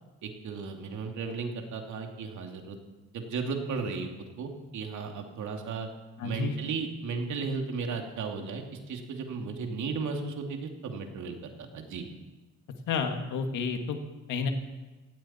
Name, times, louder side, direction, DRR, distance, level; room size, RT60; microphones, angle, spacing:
voice 1, 0.2-2.8 3.1-4.1 4.4-5.9 6.2-12.1, right 4 dB, 75° right, 3 dB, 2.6 m, -35 dB
voice 2, 6.2-6.6 12.9-14.0 14.3-14.5, left 5 dB, 80° left, 5 dB, 2.0 m, -30 dB
17.0 x 16.5 x 4.4 m, 1.2 s
cardioid pair, 90°, 30 cm